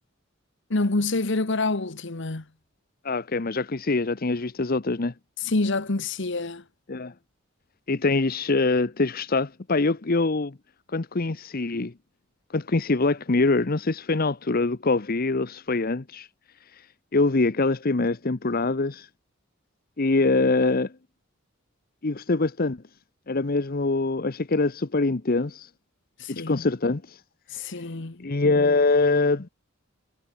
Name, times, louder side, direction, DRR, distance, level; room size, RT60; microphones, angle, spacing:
voice 1, 0.7-2.4 5.4-6.6 26.2-26.6 27.5-28.3, left 2 dB, 60° left, 1.3 m, -27 dB
voice 2, 3.0-5.1 6.9-7.1 7.9-10.6 10.9-11.9 12.5-16.3 16.7-16.9 17.1-19.1 20.0-20.9 22.0-22.8 23.3-25.7 26.3-27.2 27.6-27.8 28.2-29.5, left 3 dB, 45° left, 0.9 m, -24 dB
head